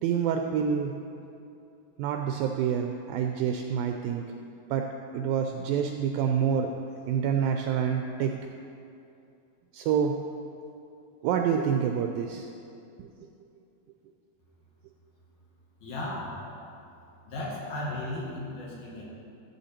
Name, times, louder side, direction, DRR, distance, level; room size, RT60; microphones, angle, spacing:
voice 1, 0.0-1.0 2.0-4.3 4.7-4.9 5.1-6.7 7.1-8.4 9.7-10.2 11.2-12.5 13.0-13.1, right 7 dB, 85° right, 4 dB, 2.1 m, -27 dB
voice 2, 15.8-16.4 17.2-19.0, left 1 dB, 65° left, -5 dB, 3.4 m, -35 dB
14.5 x 7.7 x 4.3 m, 2.7 s
omnidirectional pair, 4.6 m